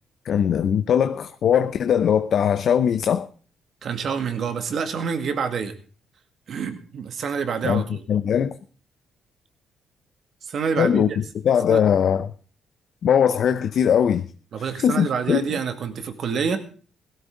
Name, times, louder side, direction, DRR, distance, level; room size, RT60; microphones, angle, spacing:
voice 1, 0.2-3.3 7.6-7.8 8.1-8.6 10.8-12.3 13.0-14.3 14.7-15.4, left 8 dB, 65° left, 0.7 m, -20 dB
voice 2, 3.8-5.7 6.5-8.0 10.4-11.2 11.7-11.8 14.5-16.6, right 6 dB, 60° right, 2.1 m, -27 dB
17.0 x 12.5 x 3.9 m
cardioid pair, 90°, 0 cm